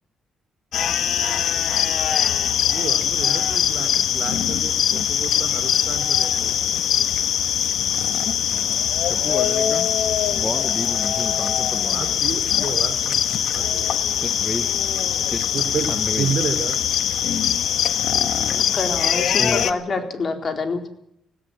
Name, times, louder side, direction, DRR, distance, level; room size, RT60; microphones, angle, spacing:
sound 1, 0.7-19.7, left 9 dB, 70° left, 1.4 m, -22 dB
voice 1, 2.7-6.8 11.9-13.9 15.5-15.9 16.2-16.8 18.1-18.6 18.9-19.2, right 7 dB, 60° right, 8 dB, 3.3 m, -31 dB
voice 2, 8.5-9.9 10.3-12.1 14.1-14.9 15.3-16.7 19.4-19.7, left 1 dB, 10° left, 11 dB, 1.3 m, -32 dB
voice 3, 18.6-20.9, left 4 dB, 45° left, 6 dB, 4.2 m, -26 dB
18.0 x 18.0 x 8.9 m, 0.73 s
cardioid pair, 90°, 0 cm